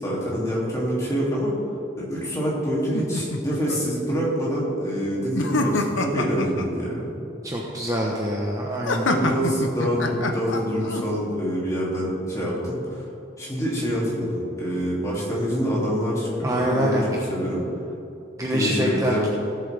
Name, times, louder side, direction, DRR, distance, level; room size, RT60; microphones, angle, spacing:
voice 1, 0.0-1.6 2.0-7.1 9.1-13.1 13.4-17.0 17.3-17.6 18.5-19.3, equal, 15° left, -6 dB, 2.6 m, -26 dB
sound 1, 2.9-3.8 5.3-6.7 8.9-11.0, left 2 dB, 80° left, 0.9 m, -25 dB
voice 2, 7.4-9.1 16.4-17.1 18.4-19.3, equal, 15° right, -3 dB, 0.9 m, -25 dB
17.0 x 7.7 x 3.4 m, 2.8 s
head